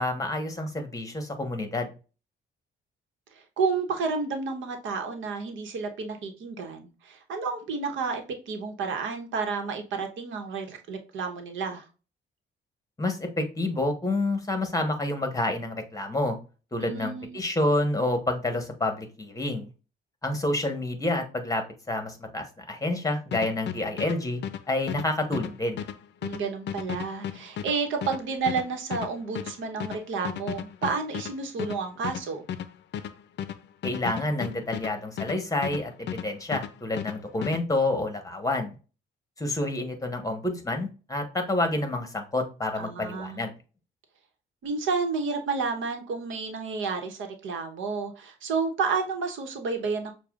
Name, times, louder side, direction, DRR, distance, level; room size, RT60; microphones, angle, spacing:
voice 1, 0.0-1.9 13.0-16.4 16.7-19.7 20.2-24.4 24.7-25.8 33.8-38.7 39.4-43.5, left 2 dB, 15° left, 6 dB, 1.1 m, -28 dB
voice 2, 3.6-11.8 16.8-17.4 26.2-32.4 42.8-43.5 44.6-50.1, right 4 dB, 80° right, 5 dB, 1.0 m, -31 dB
sound 1, 23.3-36.3 36.5-37.6, left 9 dB, 60° left, 0.5 m, -35 dB
6.6 x 2.2 x 2.4 m, 0.33 s
cardioid pair, 90°, 20 cm